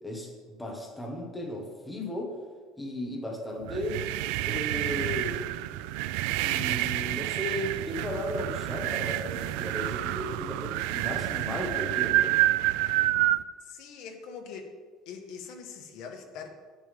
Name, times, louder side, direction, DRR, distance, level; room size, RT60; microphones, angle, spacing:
voice 1, 0.0-2.3 2.8-4.0 4.5-5.4 6.4-12.4, left 1 dB, 5° left, -1 dB, 1.4 m, -35 dB
sound 1, 3.6-13.4, right 15 dB, 90° right, 0.3 m, -28 dB
voice 2, 13.6-14.7 15.0-16.6, left 6 dB, 60° left, 3 dB, 1.3 m, -42 dB
10.5 x 8.7 x 3.5 m, 1.5 s
cardioid pair, 175°, 0 cm